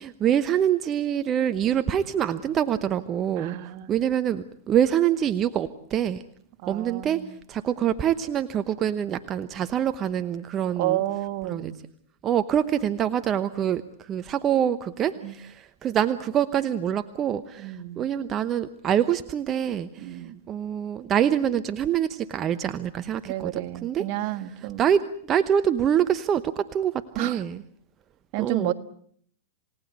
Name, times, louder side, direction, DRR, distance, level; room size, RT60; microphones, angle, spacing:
voice 1, 0.0-3.6 3.9-6.2 6.7-7.2 7.5-11.0 11.5-11.7 12.2-13.8 14.1-20.2 20.5-24.0 24.8-25.0 25.3-27.6 28.4-28.7, right 9 dB, 25° right, 12 dB, 1.0 m, -25 dB
voice 2, 3.3-4.0 6.6-7.4 10.8-11.8 15.2-15.3 17.6-18.1 20.0-20.4 23.2-24.8 27.1-27.4 28.3-28.7, right 14 dB, 50° right, 12 dB, 1.5 m, -30 dB
28.5 x 18.5 x 8.1 m, 0.63 s
hypercardioid pair, 125°, 0 cm